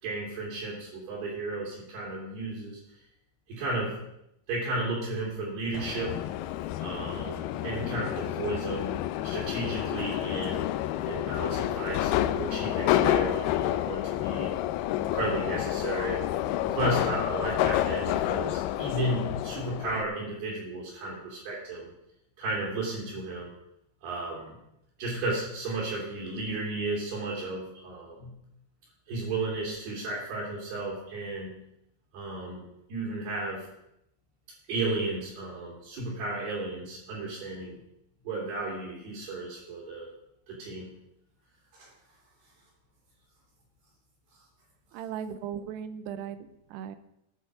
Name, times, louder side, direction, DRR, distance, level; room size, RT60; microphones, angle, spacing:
voice 1, 0.0-2.8 3.5-3.9 4.5-6.2 6.8-10.7 11.1-14.6 15.1-16.2 16.6-21.9 22.4-23.5 24.0-24.6 25.0-28.3 29.1-31.6 32.1-32.6 32.9-33.7 34.7-37.8 38.3-40.1 40.5-40.9 41.7-41.9, right 2 dB, 60° right, -4 dB, 5.1 m, -33 dB
Subway metro underground, 5.7-20.0, left 13 dB, 85° left, 2.2 m, -29 dB
voice 2, 44.9-47.0, right 8 dB, 80° right, 12 dB, 2.7 m, -37 dB
19.0 x 6.9 x 5.0 m, 0.80 s
omnidirectional pair, 5.1 m